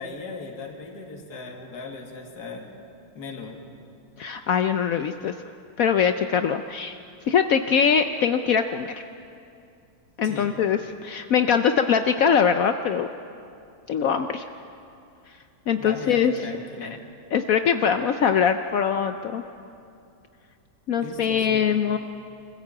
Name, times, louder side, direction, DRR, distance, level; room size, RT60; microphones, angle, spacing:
voice 1, 0.0-2.7 3.1-3.6 10.2-10.5 15.7-17.0 21.0-21.8, left 4 dB, 50° left, 1 dB, 2.6 m, -37 dB
voice 2, 4.2-5.3 5.8-7.0 7.3-8.9 10.2-13.1 13.9-14.4 15.7-16.3 16.8-16.9 17.3-19.4 20.9-22.0, left 7 dB, 85° left, 8 dB, 0.7 m, -22 dB
25.5 x 15.0 x 8.6 m, 2.5 s
omnidirectional pair, 2.3 m